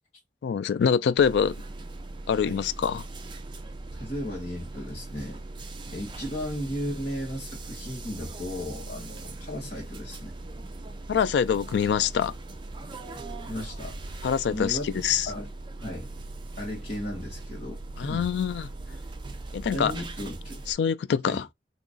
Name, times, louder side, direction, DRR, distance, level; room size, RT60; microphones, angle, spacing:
voice 1, 0.4-1.6 2.3-3.0 11.1-12.3 14.2-15.3 18.0-18.7 19.5-19.9 20.7-21.5, left 7 dB, 70° left, 0.3 m, -25 dB
sound 1, 1.2-20.7, right 2 dB, 25° right, 0.5 m, -40 dB
voice 2, 3.9-5.4 5.9-10.3 13.5-14.2 14.5-14.8 15.2-15.5 15.8-16.1 16.6-18.3 19.7-20.6 21.3-21.4, equal, 35° left, 1.4 m, -35 dB
2.9 x 2.4 x 3.8 m
head